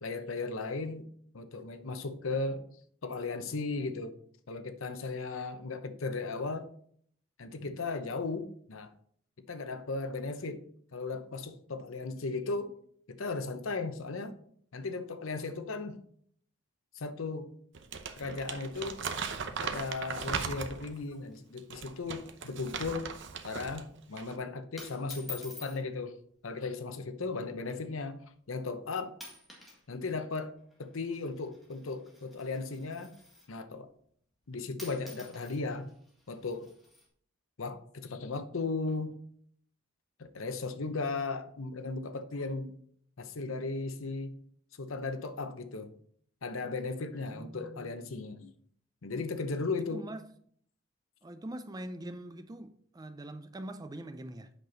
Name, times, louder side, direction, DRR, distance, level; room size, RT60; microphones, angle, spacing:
voice 1, 0.0-1.1 1.3-2.7 3.0-4.1 4.5-6.7 7.4-8.9 9.5-12.7 13.1-14.4 14.7-16.0 16.9-17.5 18.2-19.0 19.6-23.1 23.4-26.2 26.4-28.2 28.5-29.1 29.9-30.5 30.8-33.2 33.5-33.9 34.5-35.9 36.3-36.7 37.6-39.1 40.2-42.7 43.2-44.4 44.8-45.9 46.4-48.5 49.0-50.0, left 3 dB, 70° left, 0.8 m, -36 dB
Crumpling crinkling, 17.7-21.0 21.6-23.8 24.1-24.4, right 5 dB, 55° right, 0.7 m, -38 dB
sound 1, 20.1-21.0 21.3-21.4 21.7-22.0 22.3-22.6 23.0-23.3 24.0-24.3 24.8-25.8 26.8-27.1 27.8-27.9 28.6-28.8 29.1-29.8 30.1-33.6 34.4-34.5 34.8-37.1, left 3 dB, ahead, 1.7 m, -50 dB
voice 2, 47.1-47.9 49.8-50.3 51.2-54.5, right 1 dB, 20° right, 0.4 m, -43 dB
8.1 x 5.9 x 3.9 m
head